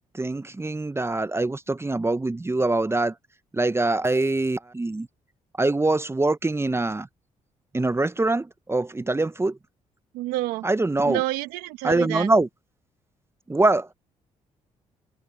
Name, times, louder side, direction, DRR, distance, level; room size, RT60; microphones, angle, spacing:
voice 1, 0.1-3.1 3.5-5.1 5.6-7.1 7.7-9.6 10.6-11.2 11.8-12.5 13.5-13.9, right 2 dB, 15° right, 0.8 m, -23 dB
voice 2, 10.1-10.7 11.1-12.3, right 17 dB, 90° right, 1.2 m, -28 dB
open air
supercardioid pair, 55°, 15 cm